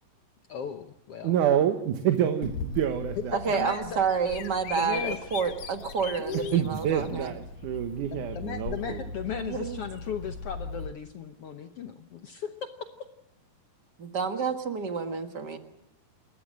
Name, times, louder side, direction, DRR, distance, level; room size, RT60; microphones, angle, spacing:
voice 1, 0.5-1.3 3.3-4.0 4.7-5.3 6.2-6.6 8.1-12.5 14.4-14.5, left 8 dB, 80° left, 7 dB, 1.3 m, -36 dB
voice 2, 1.2-3.7 6.3-9.0, right 9 dB, 70° right, 7 dB, 2.5 m, -27 dB
Bird vocalization bird call bird song, 2.4-10.9, left 5 dB, 60° left, 2.2 m, -39 dB
voice 3, 3.3-7.3 9.4-9.8 14.0-15.6, right 6 dB, 45° right, 6 dB, 1.4 m, -29 dB
28.0 x 14.0 x 7.6 m, 0.87 s
omnidirectional pair, 4.1 m